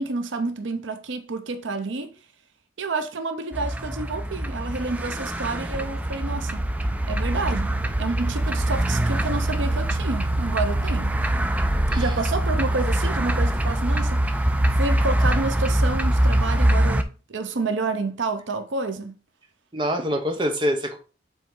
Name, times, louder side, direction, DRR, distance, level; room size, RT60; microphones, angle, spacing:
voice 1, 0.0-2.1 2.8-6.7 7.1-7.7 8.0-11.2 12.0-19.2, right 3 dB, 85° right, 0.8 m, -29 dB
sound 1, 3.5-17.0, right 1 dB, 10° right, 0.3 m, -23 dB
voice 2, 19.7-21.0, equal, 25° right, 0.9 m, -25 dB
7.2 x 4.1 x 3.8 m
head